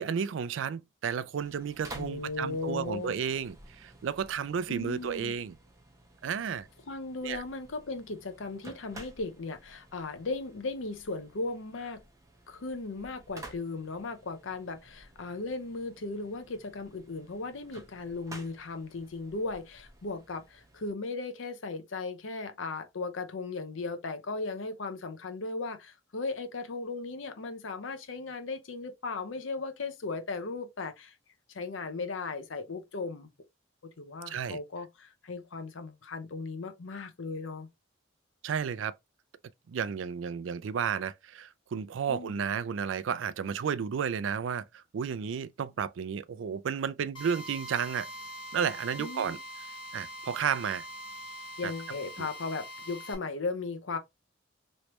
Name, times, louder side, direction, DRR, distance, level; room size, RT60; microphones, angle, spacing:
voice 1, 0.0-5.5 6.2-6.7 7.2-7.4 34.3-34.6 38.4-38.9 39.7-48.1 48.5-49.4 49.9-50.9 51.6-51.7 52.2-52.3, right 7 dB, 75° right, 0.4 m, -32 dB
sound 1, 1.4-20.9, right 1 dB, 15° right, 0.9 m, -53 dB
voice 2, 2.0-3.1 4.7-5.3 6.9-12.0 12.5-31.1 31.5-33.3 34.0-37.7 42.1-42.3 49.0-49.4 51.6-54.0, left 3 dB, 85° left, 0.7 m, -37 dB
Drill, 47.2-53.2, equal, 25° left, 1.2 m, -43 dB
3.1 x 3.1 x 2.9 m
head